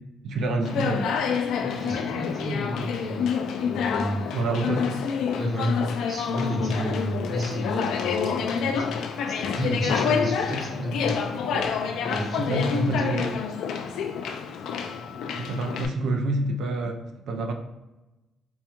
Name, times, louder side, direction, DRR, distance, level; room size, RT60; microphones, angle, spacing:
voice 1, 0.2-1.1 4.3-5.0 11.4-11.7 12.5-13.4 15.4-17.0 17.3-17.5, right 2 dB, 75° right, 4 dB, 0.4 m, -27 dB
Conversation, 0.6-15.9, left 6 dB, 80° left, 0.3 m, -28 dB
voice 2, 1.6-3.2 3.6-4.4 5.3-5.7 6.1-8.9 9.3-11.3 12.0-13.1, equal, 40° right, -4 dB, 1.3 m, -31 dB
4.3 x 2.3 x 2.9 m, 1.0 s
cardioid pair, 90°, 0 cm